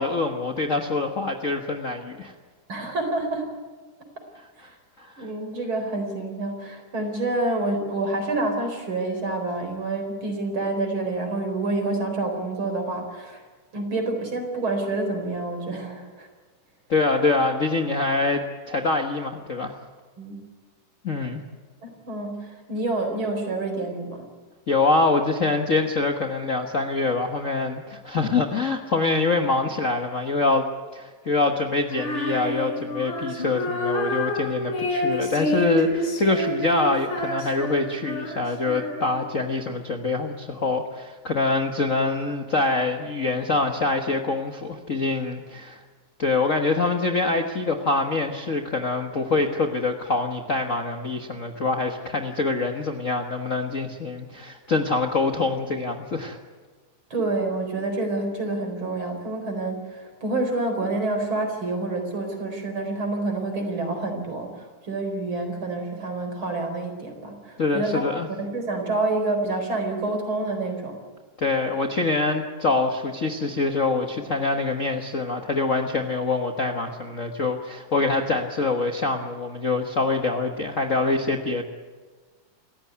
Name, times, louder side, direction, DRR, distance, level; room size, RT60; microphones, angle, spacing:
voice 1, 0.0-2.3 4.3-4.4 5.0-5.3 16.9-19.7 21.0-21.4 24.7-30.7 30.9-45.8 46.2-56.4 67.6-68.3 71.4-81.6, left 3 dB, 65° left, 4 dB, 0.7 m, -25 dB
voice 2, 2.7-3.5 4.6-4.7 5.2-13.4 13.7-16.3 20.2-20.4 21.8-24.2 57.1-68.0 68.4-71.0, right 2 dB, 40° right, 5 dB, 4.9 m, -28 dB
Female singing, 31.9-39.3, left 1 dB, 45° left, 5.1 m, -28 dB
27.5 x 14.5 x 9.4 m, 1.5 s
omnidirectional pair, 3.6 m